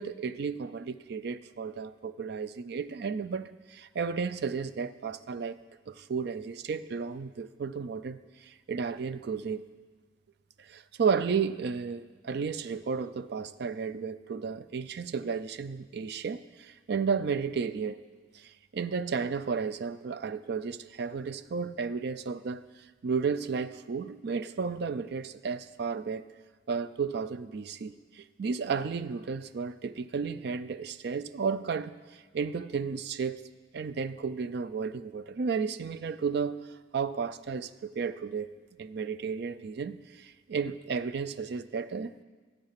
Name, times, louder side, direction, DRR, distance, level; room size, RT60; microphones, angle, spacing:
voice 1, 0.0-5.6 5.9-9.6 10.6-18.0 18.3-22.6 23.0-26.2 26.7-32.0 32.3-33.5 33.7-38.5 38.8-42.1, right 5 dB, 60° right, 14 dB, 0.4 m, -33 dB
13.5 x 7.9 x 5.8 m, 1.4 s
head